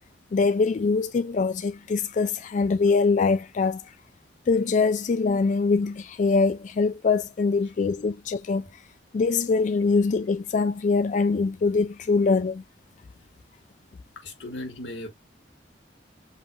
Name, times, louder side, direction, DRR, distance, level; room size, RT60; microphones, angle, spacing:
voice 1, 0.3-3.8 4.5-8.7 9.1-12.6, left 4 dB, 45° left, 0.3 m, -23 dB
voice 2, 14.1-15.1, left 1 dB, 90° left, 1.7 m, -36 dB
7.3 x 2.8 x 2.2 m
head